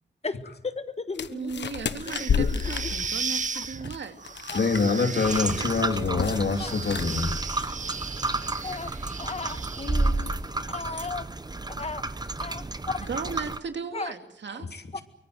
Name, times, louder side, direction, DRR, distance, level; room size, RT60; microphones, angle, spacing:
voice 1, 0.2-2.7 3.5-3.6 4.5-4.7 6.6-6.7 8.6-8.9 9.2-10.3 10.7-11.3 11.7-12.0 12.4-13.0 13.9-14.1 14.9-15.0, left 4 dB, 35° left, 12 dB, 1.5 m, -36 dB
sound 1, 1.1-4.9 5.2-5.5 5.8-6.5 6.8-7.0, left 6 dB, 85° left, 1.2 m, -30 dB
voice 2, 1.3-4.2 13.1-14.7, right 5 dB, 85° right, 7 dB, 2.6 m, -36 dB
sound 2, 2.0-10.3, right 5 dB, 45° right, 1.0 m, -36 dB
voice 3, 4.5-7.3 14.7-15.0, left 4 dB, 65° left, 6 dB, 2.9 m, -25 dB
sound 3, 5.2-13.6, right 2 dB, 20° right, 1.1 m, -31 dB
24.0 x 24.0 x 7.9 m, 0.76 s
wide cardioid pair, 125°, 18 cm